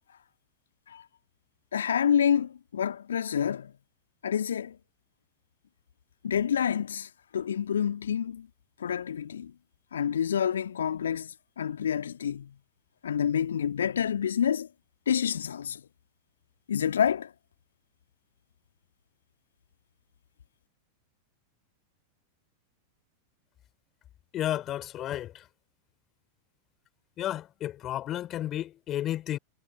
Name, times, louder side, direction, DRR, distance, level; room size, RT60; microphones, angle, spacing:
voice 1, 1.7-3.7 4.2-4.8 6.2-8.5 8.8-9.5 9.9-12.5 13.0-14.7 15.1-15.8 16.7-17.3, left 8 dB, 65° left, 1.6 m, -28 dB
voice 2, 24.3-25.4 27.2-29.4, left 12 dB, 30° left, 4.3 m, -32 dB
figure-of-eight pair, 90°, 0 cm